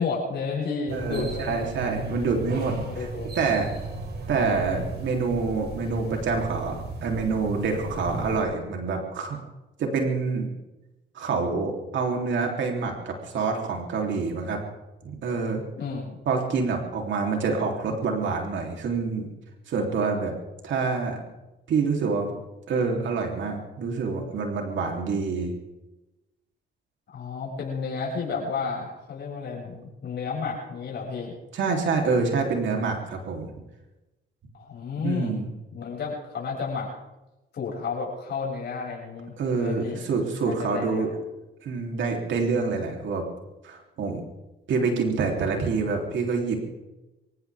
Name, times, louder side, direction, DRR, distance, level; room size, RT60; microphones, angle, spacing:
voice 1, 0.0-1.6 2.9-3.3 15.8-16.2 27.1-31.3 34.6-35.4 35.7-36.9 37.5-40.0 40.5-41.1, left 5 dB, 60° left, -3 dB, 6.8 m, -31 dB
sound 1, 0.9-8.4, right 2 dB, 55° right, 4.7 m, -35 dB
voice 2, 0.9-3.1 3.4-3.7 4.3-9.4 9.8-10.5 11.2-14.6 15.0-15.6 16.3-19.3 19.7-20.3 20.6-21.2 21.7-22.4 22.7-25.5 31.5-33.5 35.0-35.5 39.4-41.1 41.6-43.3 43.6-44.2 44.7-46.6, right 4 dB, 70° right, 2 dB, 3.5 m, -27 dB
26.0 x 15.5 x 3.6 m, 1.0 s
cardioid pair, 90°, 20 cm